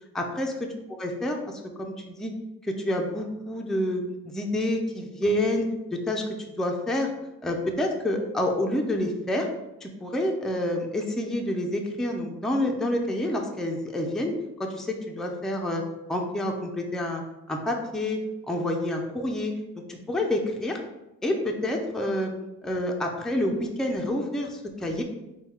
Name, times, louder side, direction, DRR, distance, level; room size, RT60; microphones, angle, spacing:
voice 1, 0.1-0.7 1.0-2.3 2.6-6.2 6.6-7.1 7.4-9.5 9.8-15.8 16.1-17.2 17.5-19.5 19.9-20.8 21.2-22.3 22.6-25.0, left 1 dB, ahead, 2 dB, 0.4 m, -28 dB
3.7 x 2.3 x 4.2 m, 0.98 s
cardioid pair, 90°, 30 cm